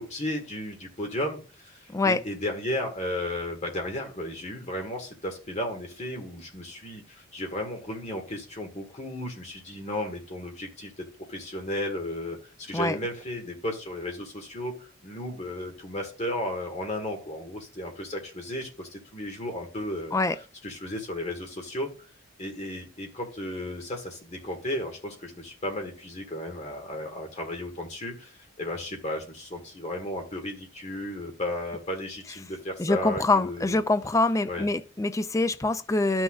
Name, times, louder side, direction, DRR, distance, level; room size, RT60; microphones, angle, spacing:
voice 1, 0.0-20.1 20.6-21.9 22.4-33.8 34.4-34.7, left 1 dB, 30° left, 1.7 m, -34 dB
voice 2, 32.8-36.2, left 2 dB, 15° left, 0.3 m, -24 dB
12.0 x 6.2 x 2.4 m
head